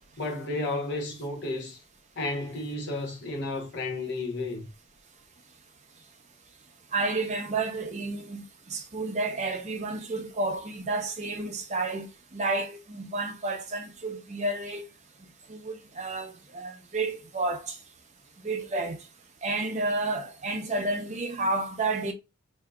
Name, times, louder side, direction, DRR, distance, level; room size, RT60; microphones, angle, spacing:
voice 1, 0.2-1.8 2.2-4.6, left 2 dB, 55° left, 0.9 m, -32 dB
voice 2, 6.9-8.4 8.7-12.1 12.3-14.8 15.5-17.8 18.4-19.0 19.4-22.1, right 2 dB, 35° right, 0.6 m, -31 dB
4.6 x 2.7 x 2.3 m
head